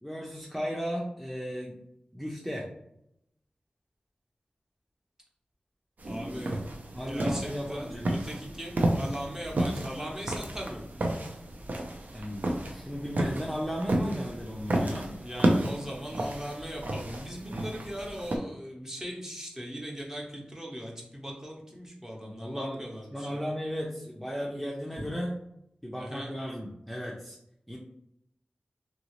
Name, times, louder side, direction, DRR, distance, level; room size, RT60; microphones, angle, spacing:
voice 1, 0.0-1.8 2.1-2.7 6.5-6.6 7.0-8.1 12.1-15.2 17.5-17.8 22.2-22.8 23.1-25.4 25.8-27.4 27.7-27.8, equal, 5° left, -3 dB, 0.6 m, -35 dB
sound 1, 6.0-18.4, right 1 dB, 65° right, 0.5 m, -32 dB
voice 2, 6.1-6.6 6.9-10.9 15.2-23.4 26.0-26.3, equal, 15° right, -2 dB, 0.9 m, -39 dB
2.8 x 2.7 x 3.1 m, 0.77 s
wide cardioid pair, 50°, 3 cm